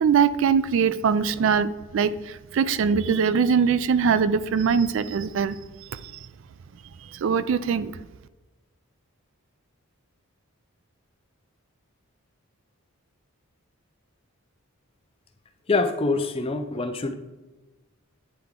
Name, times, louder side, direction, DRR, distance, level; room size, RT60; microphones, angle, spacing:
voice 1, 0.0-5.6 5.9-6.1 7.1-8.0, right 6 dB, 60° right, 14 dB, 0.3 m, -22 dB
voice 2, 15.7-17.1, left 3 dB, 25° left, 7 dB, 0.5 m, -25 dB
9.5 x 3.4 x 3.6 m, 1.1 s
head